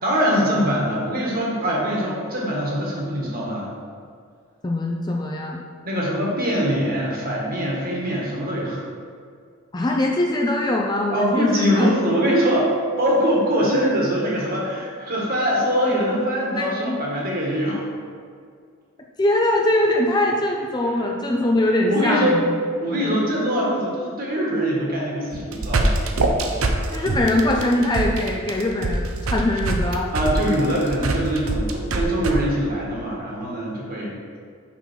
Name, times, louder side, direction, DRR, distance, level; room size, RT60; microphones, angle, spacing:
voice 1, 0.0-3.7 5.8-8.8 11.1-12.7 13.0-17.8 21.9-22.4 22.8-26.0 30.1-34.1, equal, 40° right, -4 dB, 1.6 m, -23 dB
voice 2, 4.6-5.6 9.7-12.1 16.5-17.0 19.2-22.4 23.0-23.2 26.9-30.1, left 1 dB, 20° left, 0 dB, 0.4 m, -22 dB
sound 1, 25.3-32.3, right 2 dB, 70° right, 0.7 m, -23 dB
6.1 x 5.7 x 4.5 m, 2.2 s
head